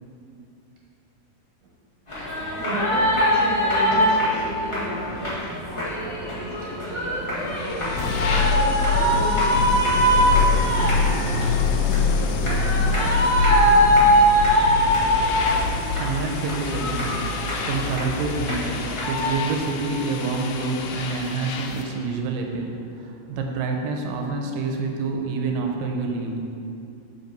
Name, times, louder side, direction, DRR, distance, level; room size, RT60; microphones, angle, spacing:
sound 1, 2.1-19.3, equal, 55° left, 0.3 m, -22 dB
voice 1, 2.6-12.3, right 1 dB, 70° right, -4 dB, 2.8 m, -34 dB
sound 2, 7.4-22.0, left 4 dB, 80° left, 2.2 m, -25 dB
voice 2, 15.5-26.4, right 3 dB, 90° right, 2 dB, 2.4 m, -28 dB
6.8 x 5.1 x 5.2 m, 2.6 s
omnidirectional pair, 3.8 m